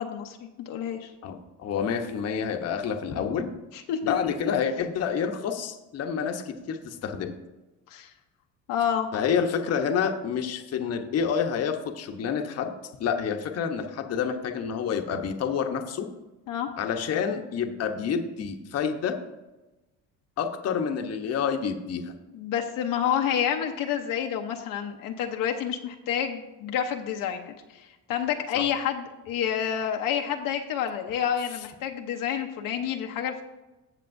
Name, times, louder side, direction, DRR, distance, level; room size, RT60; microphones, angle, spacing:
voice 1, 0.0-1.1 3.7-4.3 7.9-8.1 8.7-9.1 16.5-16.7 22.3-33.4, left 9 dB, 70° left, 3 dB, 0.9 m, -29 dB
voice 2, 1.2-3.5 4.0-7.3 9.1-12.7 13.0-16.1 16.8-19.2 20.4-22.1 28.5-28.6, left 7 dB, 45° left, 5 dB, 1.0 m, -28 dB
16.0 x 6.6 x 2.6 m, 1.0 s
cardioid pair, 120°, 34 cm